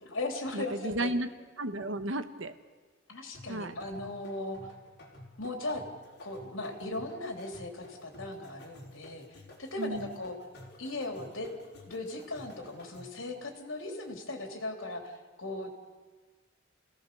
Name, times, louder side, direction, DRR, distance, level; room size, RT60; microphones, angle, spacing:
voice 1, 0.0-1.1 3.1-4.6 5.4-5.8 6.2-10.4 10.8-11.5 11.9-15.7, left 2 dB, 75° left, 2 dB, 3.7 m, -38 dB
voice 2, 0.5-1.3 1.6-2.5 3.5-3.7 9.8-10.1, right 1 dB, 70° right, 9 dB, 1.4 m, -33 dB
sound 1, 3.3-13.3, left 1 dB, 55° left, 5.0 m, -52 dB
29.5 x 17.5 x 7.1 m, 1.4 s
head